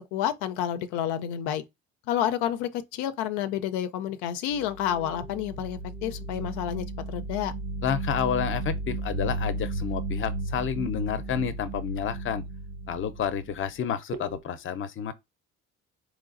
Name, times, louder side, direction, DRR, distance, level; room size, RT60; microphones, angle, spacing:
voice 1, 0.0-1.6 2.1-7.5, left 10 dB, 90° left, 0.5 m, -30 dB
sound 1, 4.5-13.8 14.1-14.4, right 2 dB, 60° right, 0.9 m, -34 dB
voice 2, 7.8-12.4 12.9-15.1, left 8 dB, 45° left, 0.6 m, -30 dB
3.9 x 3.1 x 2.5 m
supercardioid pair, 85°, 29 cm